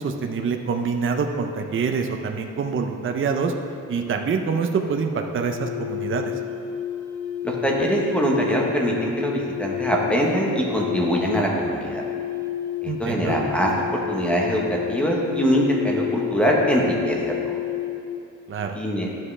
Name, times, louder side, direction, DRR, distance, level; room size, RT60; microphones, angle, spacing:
voice 1, 0.0-3.5 3.9-6.3 12.9-13.4 18.5-18.8, right 5 dB, 40° right, 4 dB, 0.5 m, -25 dB
sound 1, 5.5-18.2, left 11 dB, 80° left, 2.0 m, -30 dB
voice 2, 7.4-12.0 12.8-17.6 18.7-19.1, equal, 5° left, -2 dB, 1.0 m, -23 dB
11.0 x 7.4 x 3.3 m, 2.6 s
wide cardioid pair, 170°, 31 cm